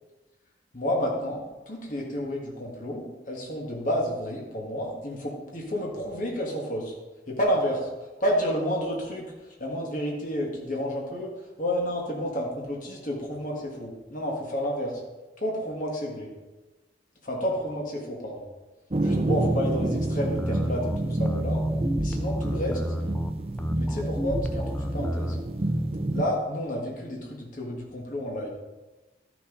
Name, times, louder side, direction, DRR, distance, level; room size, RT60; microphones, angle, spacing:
voice 1, 0.7-6.9 7.3-15.0 15.4-16.3 17.2-18.5 19.0-21.6 22.0-22.9 23.8-25.5 26.1-28.5, equal, 50° left, -2 dB, 1.8 m, -30 dB
sound 1, 18.9-26.2, right 1 dB, 35° right, 0.7 m, -28 dB
sound 2, 20.4-25.4, equal, 10° left, 0.3 m, -32 dB
13.0 x 6.4 x 3.9 m, 1.2 s
head